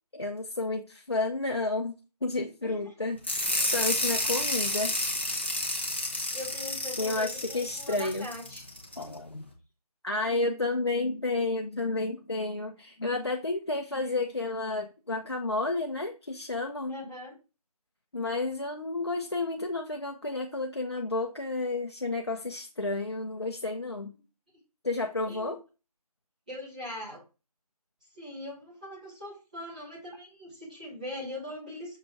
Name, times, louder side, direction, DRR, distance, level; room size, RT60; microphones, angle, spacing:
voice 1, 0.1-1.9 2.2-4.9 7.0-8.3 9.0-9.5 10.0-17.0 18.1-24.1 24.8-25.6, left 2 dB, 45° left, 3 dB, 0.8 m, -31 dB
sound 1, 3.2-9.0, left 1 dB, 15° left, 0.9 m, -30 dB
voice 2, 6.3-8.7 9.0-9.2 16.9-17.3 25.2-25.5 26.5-27.2 28.1-32.0, left 1 dB, 10° right, -8 dB, 1.7 m, -41 dB
6.5 x 3.9 x 4.6 m, 0.30 s
figure-of-eight pair, 175°, 20 cm